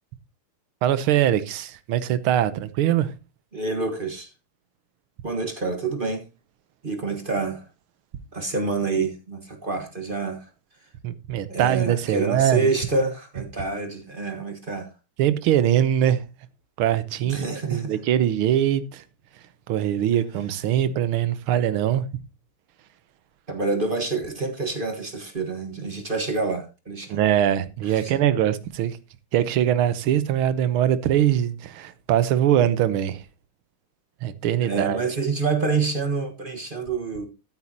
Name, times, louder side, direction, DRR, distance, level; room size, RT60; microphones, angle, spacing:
voice 1, 0.8-3.1 11.0-12.7 15.2-16.2 16.8-19.0 19.7-22.0 27.1-29.0 29.3-33.2 34.2-35.0, right 11 dB, 80° right, 1.7 m, -22 dB
voice 2, 3.5-4.3 5.2-6.2 6.8-7.6 8.3-10.5 11.3-14.9 17.2-18.0 23.5-27.2 27.8-28.1 34.6-37.3, right 4 dB, 30° right, 1.3 m, -27 dB
14.0 x 8.7 x 2.8 m
omnidirectional pair, 2.4 m